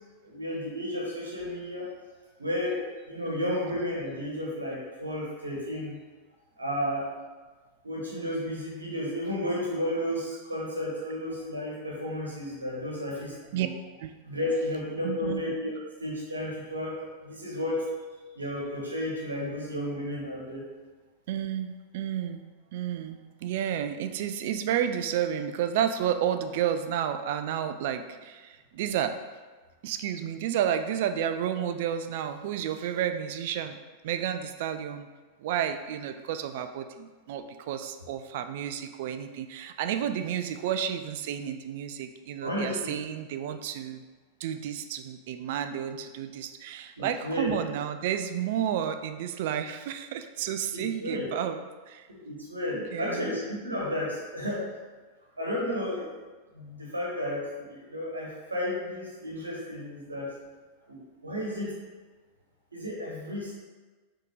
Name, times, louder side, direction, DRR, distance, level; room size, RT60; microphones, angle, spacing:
voice 1, 0.2-1.9 2.4-5.9 6.6-7.1 7.8-13.7 14.2-15.7 16.0-17.8 18.3-20.6 42.4-42.9 47.0-47.5 50.7-51.2 52.1-54.6 55.4-56.2 56.5-60.3 60.9-61.7 62.7-63.5, left 1 dB, 80° right, -4 dB, 1.3 m, -32 dB
voice 2, 3.3-3.6 13.5-13.7 14.0-14.1 15.0-15.4 21.3-22.4 22.7-29.2 29.8-33.8 34.0-35.1 35.4-44.0 44.4-51.6 51.9-52.1 52.7-53.4, right 9 dB, 50° right, 9 dB, 0.3 m, -31 dB
4.4 x 3.6 x 3.0 m, 1.3 s
figure-of-eight pair, 90°, 0 cm